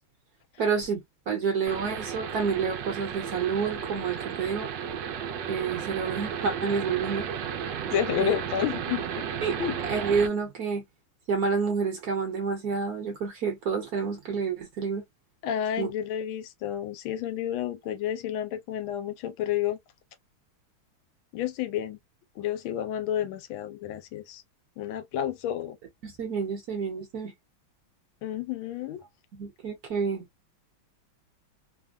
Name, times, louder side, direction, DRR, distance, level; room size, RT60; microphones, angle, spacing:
voice 1, 0.6-4.7 5.5-7.3 8.2-8.4 9.4-9.6 9.9-10.8 11.3-15.0 15.8-15.9 26.0-27.3 29.3-30.3, right 5 dB, 55° right, 1.2 m, -29 dB
sound 1, 1.7-10.3, right 7 dB, 75° right, 1.2 m, -34 dB
voice 2, 7.9-9.2 9.6-9.8 15.4-19.8 21.3-22.0 22.4-24.4 24.8-25.8 28.2-29.0, left 10 dB, 80° left, 1.4 m, -30 dB
3.4 x 2.1 x 2.3 m
omnidirectional pair, 2.3 m